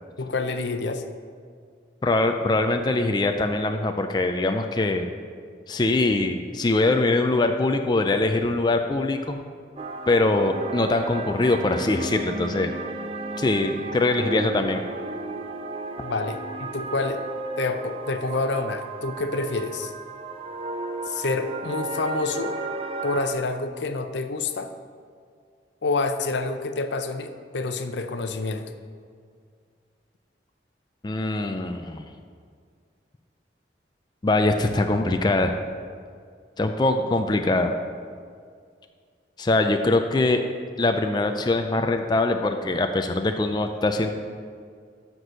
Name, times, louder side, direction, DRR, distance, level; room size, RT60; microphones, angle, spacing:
voice 1, 0.2-1.0 16.0-17.2 17.6-19.9 21.1-22.6 23.0-24.7 25.8-28.7, left 3 dB, 75° left, 8 dB, 0.6 m, -28 dB
voice 2, 2.0-5.1 5.7-9.4 10.1-12.7 13.4-14.8 31.0-32.1 34.2-35.6 36.6-37.8 39.4-40.4 40.8-44.1, left 2 dB, 25° left, 5 dB, 0.4 m, -23 dB
sound 1, 9.8-23.3, right 2 dB, 30° right, 0.5 m, -34 dB
7.8 x 6.1 x 6.2 m, 2.1 s
head